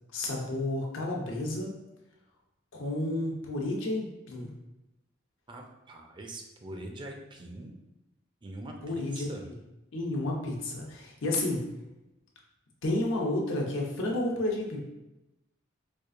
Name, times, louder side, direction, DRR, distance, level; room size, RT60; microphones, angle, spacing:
voice 1, 0.1-1.7 2.7-4.5 8.8-9.5 9.9-11.6 12.8-14.8, left 1 dB, 85° left, -1 dB, 0.8 m, -31 dB
voice 2, 5.5-7.7 8.4-9.5, right 1 dB, 25° right, 2 dB, 0.4 m, -43 dB
4.5 x 2.5 x 2.4 m, 0.98 s
head